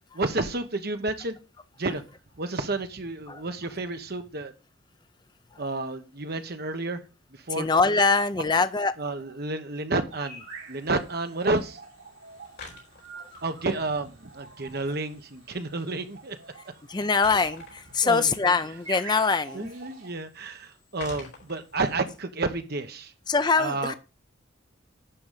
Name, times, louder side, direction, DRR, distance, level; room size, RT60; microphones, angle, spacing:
voice 1, 0.1-1.4 1.8-2.0 2.4-4.5 5.6-7.0 7.3-7.7 9.0-11.8 13.4-16.4 18.0-18.3 19.5-23.1 23.6-23.9, right 2 dB, 50° right, 1.1 m, -30 dB
voice 2, 7.6-9.0 13.2-13.3 16.9-19.7 23.3-23.9, left 4 dB, 20° left, 0.5 m, -23 dB
sound 1, 10.1-20.1, right 4 dB, 75° right, 4.2 m, -47 dB
sound 2, 10.5-21.9, left 3 dB, 55° left, 4.3 m, -50 dB
11.5 x 3.9 x 7.4 m
head